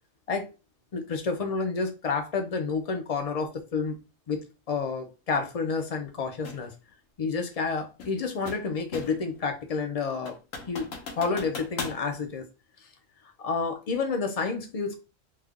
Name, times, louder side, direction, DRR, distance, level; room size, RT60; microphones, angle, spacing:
voice 1, 0.9-4.0 4.3-6.7 7.2-10.4 10.7-10.9 11.2-12.5 13.4-15.0, left 4 dB, 45° left, 5 dB, 0.5 m, -29 dB
sound 1, 6.4-6.7 8.0-9.3 9.7-9.8 10.3-12.0, left 4 dB, 85° left, 1.2 m, -38 dB
3.2 x 2.2 x 3.6 m, 0.31 s
omnidirectional pair, 1.3 m